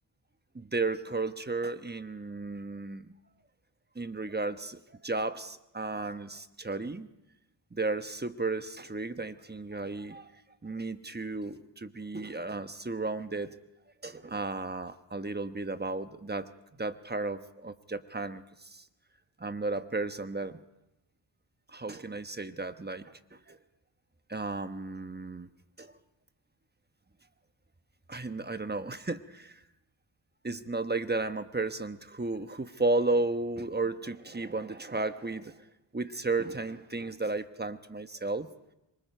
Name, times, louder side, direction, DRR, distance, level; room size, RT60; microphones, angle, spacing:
voice 1, 0.5-3.1 3.9-7.1 7.7-13.5 14.0-16.5 16.8-18.8 19.4-20.6 21.7-23.6 24.3-25.5 25.8-25.9 28.1-29.6 30.4-35.6 35.9-38.5, right 3 dB, 20° right, 10 dB, 1.1 m, -34 dB
26.0 x 23.5 x 4.6 m, 0.91 s
cardioid pair, 65°, 46 cm